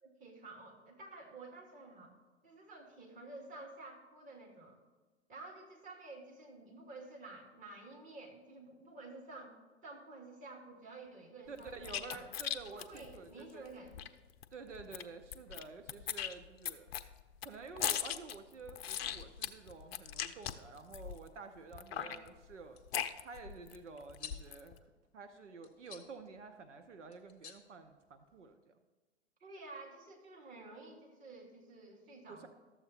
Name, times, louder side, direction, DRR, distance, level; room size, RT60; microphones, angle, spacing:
voice 1, 0.0-2.1 2.4-4.8 5.3-9.5 9.8-12.3 12.7-14.0 22.0-22.1 29.4-32.5, right 2 dB, 20° right, 0 dB, 1.6 m, -51 dB
voice 2, 11.5-13.7 14.5-16.9 17.4-22.8 23.2-24.8 25.1-28.7 32.3-32.5, right 4 dB, 85° right, 8 dB, 0.7 m, -50 dB
sound 1, 11.6-14.1 14.4-14.5 14.7-15.6 15.9-21.3 21.7-23.8 24.1-24.7, left 10 dB, 60° left, 0.5 m, -39 dB
sound 2, 19.1-28.5, left 8 dB, 25° left, 0.8 m, -58 dB
12.5 x 7.2 x 2.8 m, 1.3 s
figure-of-eight pair, 105°, 35 cm